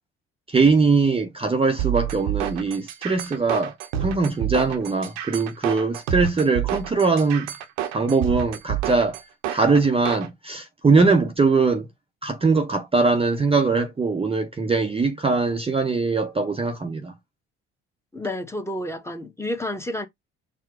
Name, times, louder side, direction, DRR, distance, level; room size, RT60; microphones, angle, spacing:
voice 1, 0.5-3.7 4.0-7.5 7.9-9.2 9.5-11.9 12.2-17.1, right 4 dB, 20° right, 0.7 m, -21 dB
sound 1, 1.8-10.3, right 11 dB, 80° right, 0.8 m, -28 dB
voice 2, 18.1-20.1, left 1 dB, 10° left, 1.1 m, -30 dB
4.5 x 2.2 x 4.6 m
hypercardioid pair, 65°, 29 cm